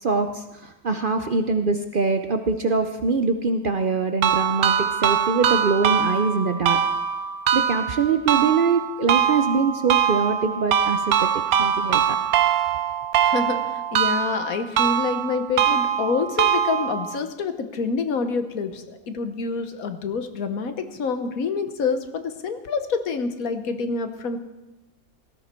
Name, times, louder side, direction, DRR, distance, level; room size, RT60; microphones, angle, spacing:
voice 1, 0.0-6.8 7.5-11.3 11.6-12.2, right 4 dB, 50° right, 7 dB, 0.7 m, -23 dB
sound 1, 4.2-17.2, right 8 dB, 90° right, 1.2 m, -23 dB
voice 2, 13.2-24.4, left 5 dB, 75° left, 9 dB, 1.5 m, -27 dB
18.0 x 14.0 x 4.4 m, 1.0 s
omnidirectional pair, 1.5 m